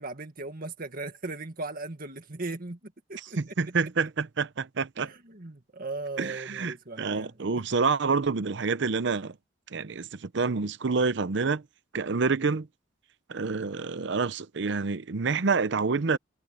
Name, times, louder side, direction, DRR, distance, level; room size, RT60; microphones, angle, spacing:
voice 1, 0.0-3.4 5.0-7.7 12.1-12.2, right 2 dB, 50° right, 1.9 m, -38 dB
voice 2, 3.2-5.1 6.2-9.4 9.7-11.6 11.9-12.7 13.3-16.2, right 4 dB, 65° right, 0.7 m, -28 dB
head